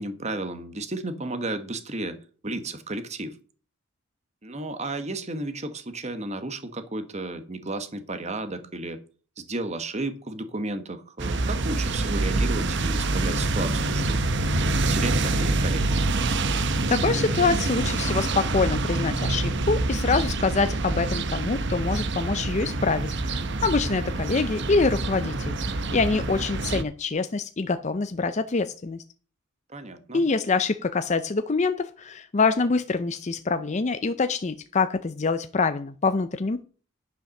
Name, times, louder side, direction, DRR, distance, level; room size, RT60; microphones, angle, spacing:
voice 1, 0.0-2.2 2.4-3.3 4.4-9.0 9.4-15.8 29.7-30.3, right 2 dB, 30° right, 1.2 m, -33 dB
sound 1, 11.2-26.8, right 2 dB, 55° right, 0.8 m, -26 dB
voice 2, 16.9-29.0 30.1-36.6, left 4 dB, 35° left, 0.5 m, -25 dB
10.0 x 5.8 x 6.5 m
head